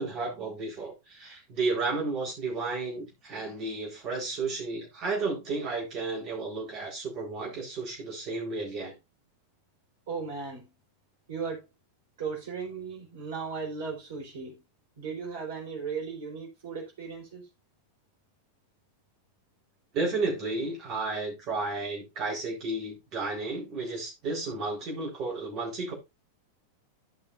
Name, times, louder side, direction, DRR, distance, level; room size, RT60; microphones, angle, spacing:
voice 1, 0.0-8.9 19.9-25.9, right 3 dB, 35° right, 4.1 m, -32 dB
voice 2, 10.1-10.7 11.3-11.6 12.2-14.6 15.0-17.5, right 5 dB, 55° right, 4.5 m, -36 dB
13.5 x 5.7 x 2.5 m
figure-of-eight pair, 90°, 0 cm